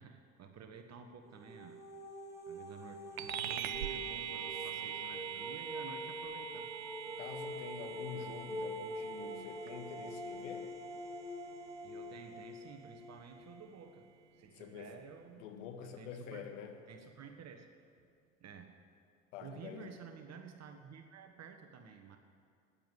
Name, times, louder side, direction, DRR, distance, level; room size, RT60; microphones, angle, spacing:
voice 1, 0.0-1.8 2.5-6.7 11.8-15.5 15.8-16.5 16.9-17.7 18.4-18.8 19.4-22.2, right 6 dB, 40° right, 6 dB, 1.4 m, -52 dB
sound 1, 1.3-14.1, equal, 10° right, 3.8 m, -45 dB
sound 2, 3.2-13.0, right 10 dB, 85° right, 0.7 m, -44 dB
voice 2, 7.2-10.7 14.5-15.0 15.4-16.8 19.3-19.9, left 7 dB, 70° left, 4 dB, 1.8 m, -47 dB
14.0 x 9.9 x 9.2 m, 2.3 s
hypercardioid pair, 65°, 39 cm